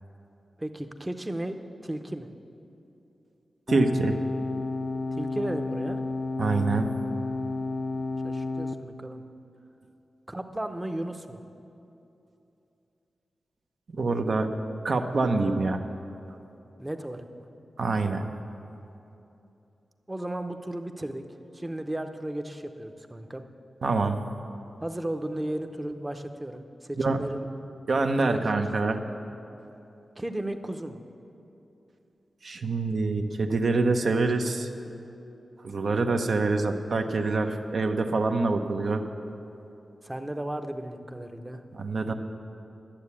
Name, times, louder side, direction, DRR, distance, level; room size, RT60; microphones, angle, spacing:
voice 1, 0.6-1.6 1.8-2.3 5.2-6.0 8.2-9.2 10.3-11.4 16.8-17.5 20.1-21.2 21.5-23.4 24.8-27.5 28.2-28.4 28.8-29.0 30.2-31.0 34.9-35.3 35.9-36.2 40.0-41.6, right 1 dB, 15° right, 7 dB, 0.7 m, -35 dB
sound 1, 3.7-8.7, left 3 dB, 35° left, 0.5 m, -31 dB
voice 2, 3.7-4.2 6.4-6.9 13.9-14.5 14.8-15.8 17.8-18.2 23.8-24.2 27.0-27.2 27.9-29.0 32.4-34.7 35.6-39.0 41.8-42.1, right 3 dB, 65° right, 5 dB, 0.8 m, -25 dB
11.5 x 7.4 x 8.5 m, 2.9 s
cardioid pair, 75°, 0 cm